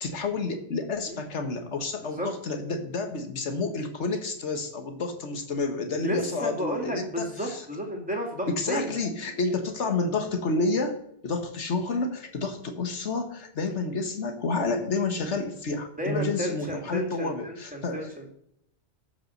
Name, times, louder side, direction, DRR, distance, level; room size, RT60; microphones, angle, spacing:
voice 1, 0.0-7.7 8.5-18.1, left 3 dB, 85° left, 6 dB, 1.7 m, -30 dB
voice 2, 6.0-8.9 16.0-18.3, equal, 5° right, 1 dB, 2.3 m, -32 dB
13.0 x 5.7 x 6.5 m, 0.73 s
omnidirectional pair, 1.2 m